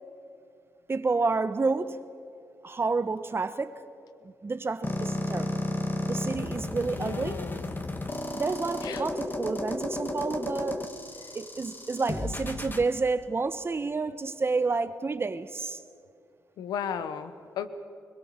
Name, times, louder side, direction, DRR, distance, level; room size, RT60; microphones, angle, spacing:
voice 1, 0.9-2.0 2.6-3.8 4.2-5.6 6.1-7.5 8.3-10.8 11.3-15.8, right 3 dB, 35° right, 1.2 m, -29 dB
sound 1, 4.8-12.8, left 2 dB, 30° left, 2.1 m, -33 dB
voice 2, 7.0-7.7 8.8-9.0 16.6-17.7, left 8 dB, 85° left, 1.1 m, -35 dB
22.0 x 21.0 x 7.5 m
supercardioid pair, 50°, 7 cm